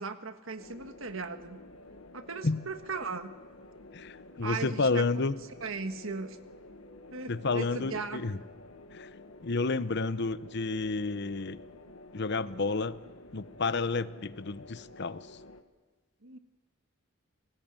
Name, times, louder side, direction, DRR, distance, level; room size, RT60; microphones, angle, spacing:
voice 1, 0.0-1.6 2.1-3.3 4.4-5.0 5.6-6.4 7.1-8.2 16.2-16.4, right 4 dB, 70° right, 9 dB, 1.7 m, -37 dB
sound 1, 0.6-15.6, left 2 dB, 80° left, 1.7 m, -51 dB
sound 2, 1.0-8.2, right 3 dB, 25° left, 2.5 m, -62 dB
voice 2, 3.9-5.3 7.3-8.4 8.9-9.1 9.4-11.6 12.1-13.0 13.3-15.3, left 3 dB, 55° left, 15 dB, 0.8 m, -30 dB
28.5 x 19.5 x 9.0 m, 1.3 s
head